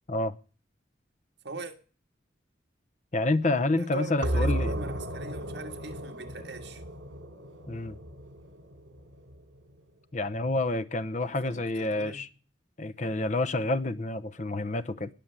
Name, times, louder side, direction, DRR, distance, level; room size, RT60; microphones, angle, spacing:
voice 1, 1.4-1.7 3.8-6.8 11.2-12.2, right 3 dB, 65° right, 2.0 m, -42 dB
voice 2, 3.1-4.8 7.7-8.0 10.1-12.3 12.8-15.1, left 2 dB, 40° left, 0.8 m, -28 dB
sound 1, 4.2-9.6, right 1 dB, 80° right, 2.5 m, -34 dB
19.5 x 6.9 x 9.0 m
head